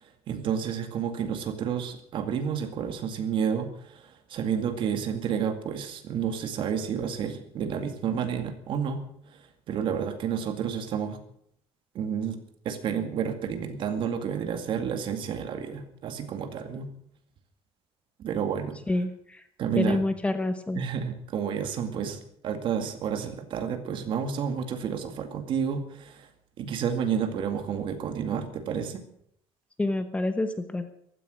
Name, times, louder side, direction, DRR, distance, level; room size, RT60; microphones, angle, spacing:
voice 1, 0.0-11.2 11.9-12.4 12.6-16.9 18.2-18.8 19.6-20.0 20.7-26.3 26.6-29.0, right 7 dB, 50° right, 7 dB, 2.2 m, -30 dB
voice 2, 18.9-19.4 19.8-20.8 29.8-30.9, left 2 dB, 10° left, 9 dB, 1.0 m, -27 dB
15.0 x 14.0 x 6.4 m, 0.67 s
cardioid pair, 170°, 11 cm